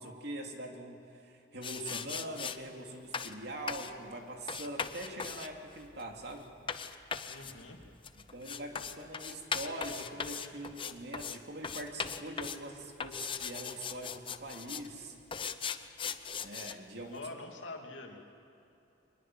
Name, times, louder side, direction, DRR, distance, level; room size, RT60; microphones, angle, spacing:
voice 1, 0.0-6.5 8.1-15.2 16.4-17.3, right 1 dB, 60° right, 2 dB, 2.8 m, -43 dB
sound 1, 1.6-2.6 3.1-3.4 3.7-3.9 4.5-11.4 11.6-12.6 13.0-14.9 15.3-16.7, left 6 dB, 30° left, 0.8 m, -39 dB
voice 2, 7.2-7.8 16.9-18.2, left 2 dB, 85° left, 2 dB, 2.9 m, -45 dB
24.0 x 20.5 x 7.6 m, 2.8 s
head